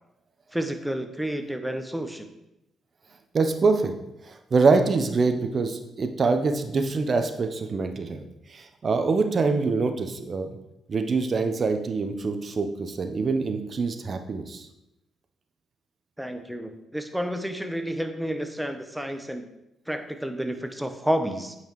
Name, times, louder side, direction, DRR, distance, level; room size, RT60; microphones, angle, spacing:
voice 1, 0.5-2.3 16.2-19.5 19.9-21.6, equal, 5° right, 7 dB, 1.0 m, -30 dB
voice 2, 3.3-3.9 4.3-8.2 8.5-10.5 10.9-14.7, right 4 dB, 45° right, 7 dB, 0.8 m, -24 dB
8.6 x 5.7 x 3.1 m, 0.90 s
hypercardioid pair, 40°, 0 cm